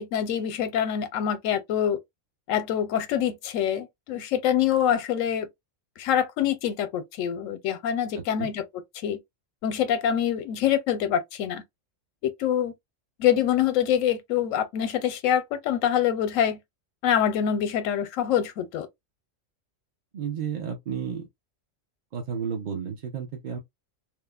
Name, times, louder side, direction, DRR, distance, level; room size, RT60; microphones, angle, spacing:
voice 1, 0.0-2.0 2.5-5.5 6.0-8.6 9.0-9.2 9.6-11.6 12.2-12.7 13.2-16.6 17.0-18.9, left 9 dB, 80° left, 1.0 m, -25 dB
voice 2, 8.1-8.5 20.1-21.3 22.1-23.6, right 7 dB, 50° right, 0.6 m, -32 dB
3.1 x 2.0 x 2.3 m
omnidirectional pair, 1.4 m